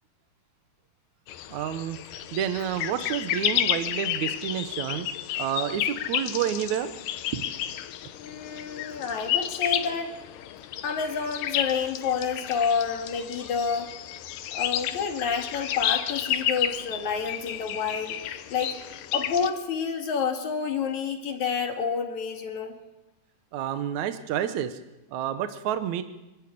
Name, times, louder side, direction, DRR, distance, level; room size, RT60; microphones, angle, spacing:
sound 1, 1.3-19.5, left 11 dB, 90° left, 2.6 m, -31 dB
voice 1, 1.5-2.0 2.3-5.1 5.4-6.9 7.3-7.4 23.5-24.8 25.1-26.0, right 10 dB, 70° right, 9 dB, 2.1 m, -29 dB
voice 2, 8.2-10.2 10.8-13.9 14.5-18.8 19.1-22.7, left 6 dB, 65° left, 4 dB, 3.3 m, -29 dB
26.0 x 13.0 x 8.5 m, 1.0 s
omnidirectional pair, 3.7 m